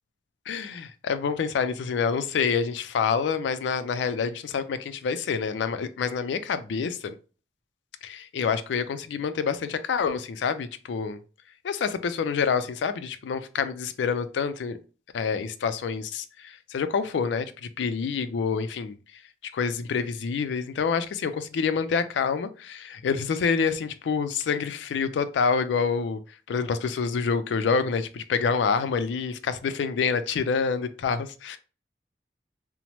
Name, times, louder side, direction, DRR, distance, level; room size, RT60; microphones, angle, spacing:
voice 1, 0.5-7.2 8.0-11.2 11.6-14.8 15.1-19.0 19.5-26.2 26.5-31.6, left 5 dB, 85° left, 0.3 m, -27 dB
2.9 x 2.0 x 2.9 m
head